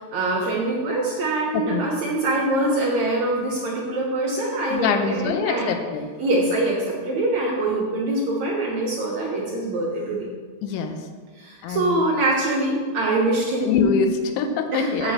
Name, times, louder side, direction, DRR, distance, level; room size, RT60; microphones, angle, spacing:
voice 1, 0.1-5.7 6.2-10.3 11.4-13.7 14.7-15.1, right 2 dB, 75° right, -4 dB, 1.7 m, -24 dB
voice 2, 1.5-1.8 4.7-6.1 10.6-11.0 11.6-12.0 13.6-15.1, left 5 dB, 90° left, 6 dB, 3.1 m, -24 dB
7.4 x 6.1 x 7.5 m, 1.5 s
omnidirectional pair, 5.1 m